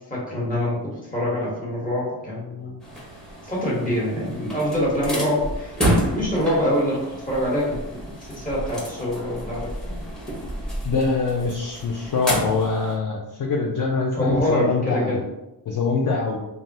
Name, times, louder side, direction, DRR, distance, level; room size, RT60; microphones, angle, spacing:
voice 1, 0.1-2.8 3.4-10.0 14.1-15.2, left 1 dB, 20° left, -6 dB, 1.0 m, -25 dB
sound 1, 2.8-13.0, equal, ahead, 0.6 m, -30 dB
voice 2, 10.8-15.2 15.7-16.4, left 4 dB, 50° left, -1 dB, 0.4 m, -24 dB
3.3 x 2.2 x 2.6 m, 0.95 s
wide cardioid pair, 150°, 42 cm